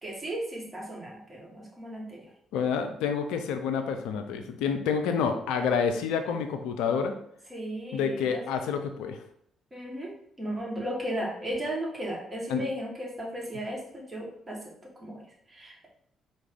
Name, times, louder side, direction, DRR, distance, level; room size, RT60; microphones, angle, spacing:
voice 1, 0.0-2.3 7.5-8.4 9.7-14.6 14.9-15.2 15.5-15.9, right 1 dB, 30° right, -2 dB, 1.5 m, -35 dB
voice 2, 2.5-7.1 7.9-9.2 12.5-12.6, left 6 dB, 65° left, 6 dB, 0.3 m, -28 dB
4.6 x 2.6 x 3.6 m, 0.69 s
figure-of-eight pair, 40°, 0 cm